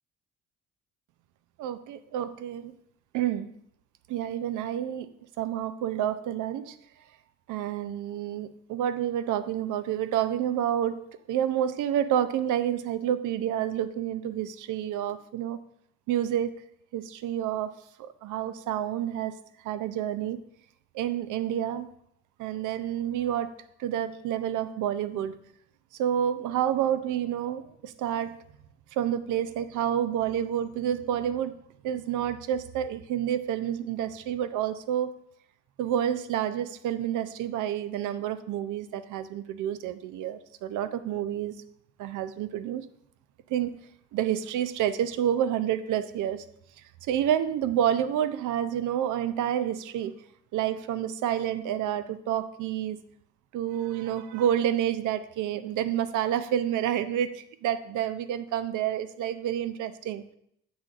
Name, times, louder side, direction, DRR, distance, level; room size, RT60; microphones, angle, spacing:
voice 1, 1.6-2.7 3.1-3.5 4.1-6.8 7.5-15.6 16.1-16.7 16.9-17.7 18.0-19.3 19.6-20.4 20.9-21.9 22.4-23.5 23.8-25.4 26.0-28.4 28.9-31.6 31.8-35.1 35.8-41.5 42.0-42.8 43.5-43.8 44.1-46.4 47.0-50.1 50.5-53.0 53.5-60.2, right 10 dB, 80° right, 12 dB, 0.5 m, -29 dB
7.4 x 6.2 x 2.4 m, 0.72 s
cardioid pair, 90°, 30 cm